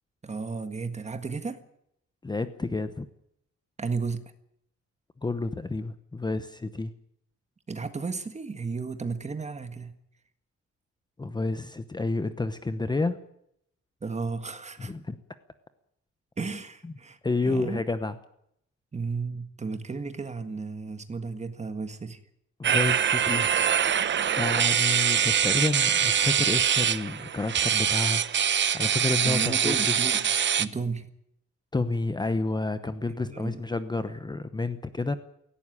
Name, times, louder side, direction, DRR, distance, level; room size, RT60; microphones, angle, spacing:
voice 1, 0.2-1.6 3.8-4.3 7.7-9.9 14.0-14.9 16.4-17.2 17.4-17.8 18.9-22.2 29.2-30.3 30.5-31.1 33.3-33.6, right 4 dB, 25° right, 10 dB, 1.7 m, -33 dB
voice 2, 2.2-3.1 5.2-6.9 11.2-13.2 14.8-15.2 17.2-18.2 22.6-23.5 24.3-28.2 28.7-30.0 31.7-35.2, left 3 dB, 15° left, 11 dB, 0.9 m, -30 dB
sound 1, 22.6-30.6, right 8 dB, 40° right, 0.8 m, -24 dB
17.5 x 17.0 x 9.9 m, 0.74 s
wide cardioid pair, 160°, 29 cm